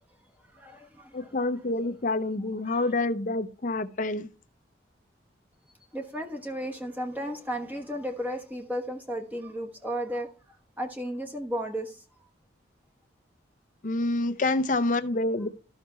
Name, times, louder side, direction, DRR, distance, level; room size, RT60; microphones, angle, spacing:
voice 1, 0.6-1.7 2.7-2.8 5.9-10.3 10.8-12.0, equal, 10° right, 1.2 m, -34 dB
voice 2, 1.1-4.3 13.8-15.5, left 2 dB, 45° left, 0.6 m, -27 dB
12.5 x 5.6 x 3.3 m
head